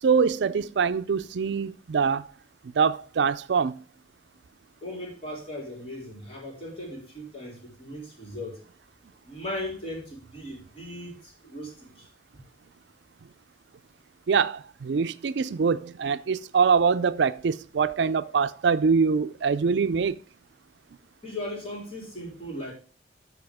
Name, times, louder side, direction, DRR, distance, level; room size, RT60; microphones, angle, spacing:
voice 1, 0.0-2.2 2.8-3.8 14.3-20.2, right 5 dB, 70° right, 0.4 m, -24 dB
voice 2, 4.8-8.6 9.2-12.1 21.2-22.7, left 1 dB, 35° left, 3.8 m, -37 dB
13.0 x 4.8 x 3.5 m
head